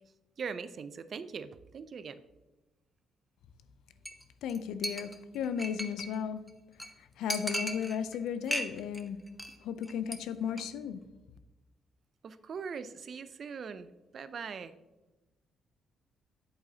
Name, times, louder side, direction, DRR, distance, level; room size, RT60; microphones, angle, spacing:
voice 1, 0.4-2.2 12.2-13.9 14.1-14.7, right 6 dB, 50° right, 13 dB, 0.4 m, -41 dB
Chink clink, 4.0-4.2 4.5-4.6 4.8-6.2 6.5-6.6 6.8-6.9 7.3-8.2 8.5-9.0 9.3-9.6 9.8-10.2 10.5-10.6, equal, 5° right, 0.7 m, -36 dB
voice 2, 4.4-6.4 7.2-9.2 9.6-11.0, left 8 dB, 85° left, 12 dB, 0.4 m, -35 dB
8.4 x 7.7 x 2.8 m, 1.0 s
cardioid pair, 90°, 0 cm